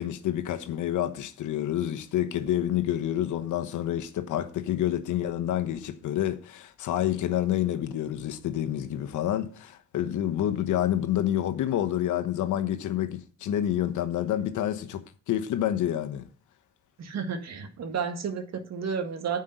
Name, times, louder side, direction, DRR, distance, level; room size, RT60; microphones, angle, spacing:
voice 1, 0.0-16.3, left 11 dB, 80° left, 1.1 m, -28 dB
voice 2, 17.0-19.4, right 6 dB, 60° right, 1.9 m, -32 dB
9.5 x 5.4 x 7.9 m
cardioid pair, 90°, 30 cm